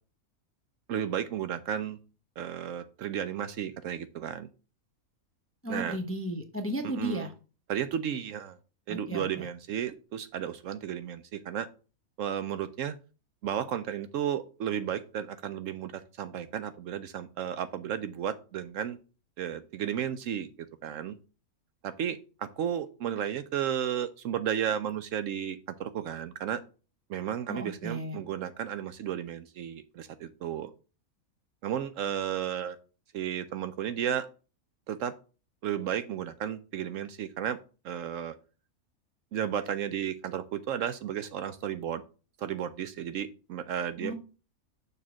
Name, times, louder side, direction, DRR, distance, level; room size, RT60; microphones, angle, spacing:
voice 1, 0.9-2.0 2.4-4.5 5.7-6.0 6.8-7.3 7.7-8.6 8.9-11.7 12.2-13.0 13.4-19.0 19.4-21.2 21.8-26.6 27.1-30.7 31.6-32.8 33.1-34.3 34.9-35.1 35.6-37.6 37.8-38.3 39.3-42.0 42.4-44.1, right 9 dB, 70° right, 11 dB, 0.8 m, -33 dB
voice 2, 5.6-7.3 8.9-9.5 27.5-28.2 44.0-44.1, equal, 15° left, 4 dB, 0.6 m, -34 dB
6.7 x 3.3 x 6.0 m, 0.34 s
omnidirectional pair, 1.5 m